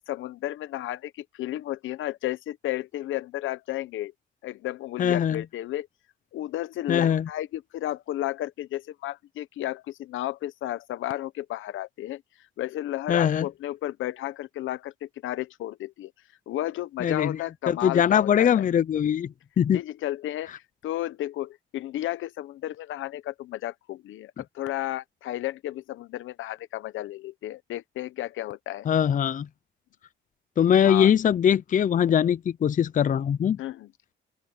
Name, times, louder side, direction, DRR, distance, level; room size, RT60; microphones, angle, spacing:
voice 1, 0.1-4.1 4.4-5.9 6.3-12.2 12.6-16.1 16.5-18.7 19.7-20.5 20.8-28.9 30.8-31.1 33.6-33.9, left 14 dB, 80° left, 0.9 m, -33 dB
voice 2, 5.0-5.4 6.9-7.3 13.1-13.5 17.0-17.4 17.7-19.8 28.9-29.5 30.6-33.6, left 9 dB, 40° left, 0.6 m, -22 dB
open air
cardioid pair, 90°, 20 cm